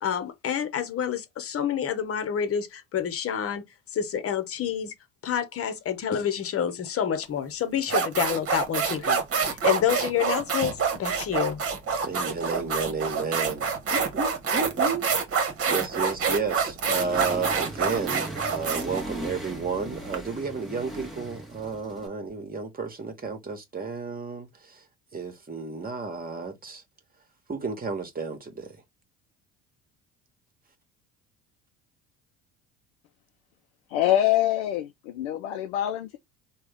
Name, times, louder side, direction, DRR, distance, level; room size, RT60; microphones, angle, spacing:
voice 1, 0.0-3.6 3.9-4.9 5.2-11.6, left 8 dB, 45° left, 1.0 m, -28 dB
sound 1, 7.2-7.4 7.8-20.2, right 5 dB, 45° right, 1.3 m, -27 dB
voice 2, 12.0-24.9 25.1-26.8 27.5-28.8, right 5 dB, 25° right, 1.5 m, -32 dB
Accelerating revving vroom, 16.9-22.1, right 1 dB, ahead, 1.2 m, -38 dB
voice 3, 33.9-36.2, left 12 dB, 80° left, 0.5 m, -25 dB
3.4 x 2.4 x 3.4 m
hypercardioid pair, 70°, 33 cm